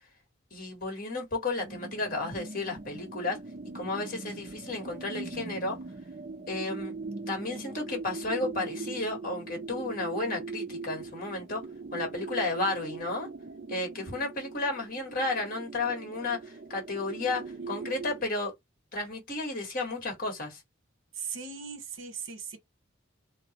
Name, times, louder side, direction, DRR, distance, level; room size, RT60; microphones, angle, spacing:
voice 1, 0.5-3.4 3.7-5.8 6.5-6.9 7.3-11.6 11.9-13.3 13.7-18.5 18.9-20.6, left 2 dB, 45° left, 1.7 m, -33 dB
sound 1, 1.6-18.2, right 4 dB, 40° right, 0.5 m, -41 dB
voice 2, 21.1-22.6, right 6 dB, 70° right, 1.0 m, -38 dB
2.9 x 2.9 x 3.0 m
head